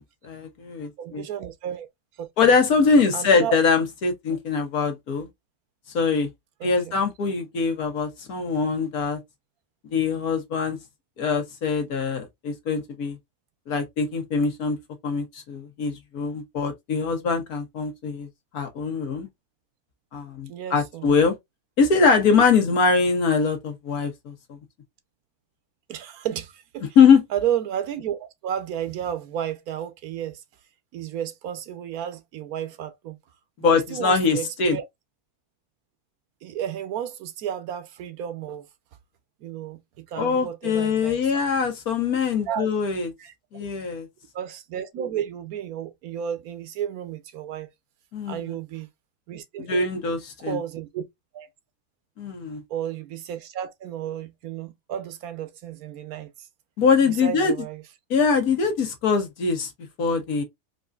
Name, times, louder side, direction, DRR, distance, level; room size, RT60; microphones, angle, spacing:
voice 1, 0.0-1.2 2.4-5.3 5.9-6.3 6.6-9.2 9.9-10.8 11.2-13.2 13.7-14.8 15.0-18.3 18.5-19.3 20.1-21.4 21.8-24.6 27.0-27.2 33.6-34.8 40.2-43.1 43.5-44.1 48.1-48.6 49.7-50.6 52.2-52.6 56.8-57.5 58.1-59.7 60.0-60.4, left 5 dB, 85° left, 1.8 m, -22 dB
voice 2, 1.0-1.9 2.2-2.3 3.1-3.6 4.3-4.4 6.6-7.0 20.5-21.2 25.9-26.9 27.3-30.4 30.9-33.2 33.6-34.8 36.4-38.7 39.4-41.2 42.5-42.7 43.2-43.3 44.3-47.7 48.3-48.9 49.3-49.9 50.4-51.0 51.3-51.5 52.7-56.5 57.0-57.8, right 10 dB, 80° right, 1.2 m, -32 dB
4.6 x 2.7 x 2.3 m
omnidirectional pair, 1.5 m